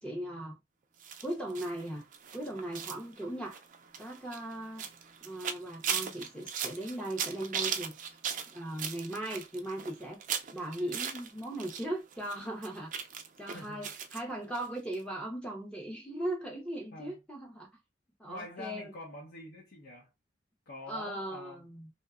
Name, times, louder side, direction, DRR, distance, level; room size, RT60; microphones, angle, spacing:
voice 1, 0.0-0.6 1.2-2.0 2.3-3.6 4.0-4.8 5.2-8.2 8.5-10.2 10.5-12.9 13.4-17.7 18.2-18.9 20.9-21.9, right 1 dB, 5° left, 0.5 m, -38 dB
sound 1, 1.0-11.8 12.1-14.2 14.5-14.7 14.9-15.0, right 7 dB, 40° right, 0.3 m, -38 dB
voice 2, 13.5-13.9 16.9-17.2 18.3-20.1 20.7-21.7, left 2 dB, 55° left, 0.6 m, -45 dB
2.7 x 2.1 x 2.3 m
head